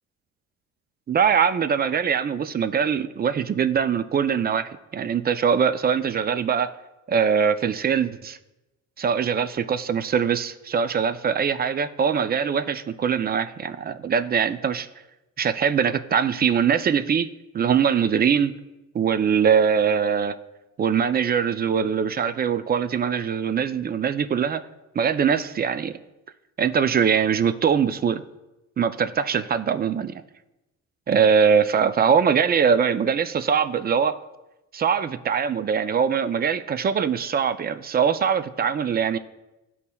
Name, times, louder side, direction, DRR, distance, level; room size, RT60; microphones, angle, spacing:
voice 1, 1.1-6.7 7.1-8.4 9.0-14.9 15.4-18.6 18.9-20.3 20.8-24.6 25.0-26.0 26.6-28.2 28.8-30.1 31.1-34.2 34.7-39.2, right 7 dB, 30° right, 11 dB, 0.4 m, -22 dB
12.5 x 4.2 x 2.3 m, 0.99 s
cardioid pair, 90°, 30 cm